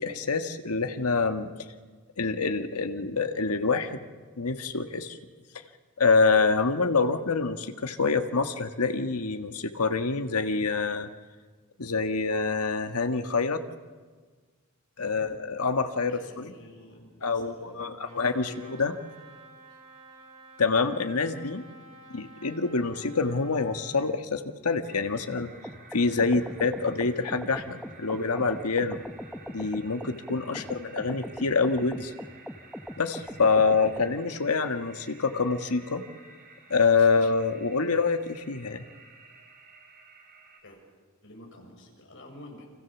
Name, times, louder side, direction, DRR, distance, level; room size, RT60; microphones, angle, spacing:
voice 1, 0.0-1.5 2.2-4.0 4.4-5.2 6.0-11.1 11.8-13.6 15.0-16.5 17.2-18.9 20.6-21.6 22.1-25.5 25.9-29.0 29.5-32.1 33.0-36.0 36.7-38.8, left 4 dB, 85° left, 7 dB, 1.5 m, -26 dB
voice 2, 15.0-15.4 16.1-18.8 30.4-30.7 37.0-37.1 40.6-40.8 41.2-42.6, left 1 dB, 55° left, 1 dB, 6.7 m, -48 dB
Trumpet, 18.0-24.1, right 2 dB, 85° right, 7.9 m, -51 dB
sound 1, 24.8-40.6, right 4 dB, 40° right, 4.2 m, -53 dB
sound 2, 25.4-34.1, equal, ahead, 0.9 m, -41 dB
29.0 x 25.5 x 7.2 m, 1.5 s
head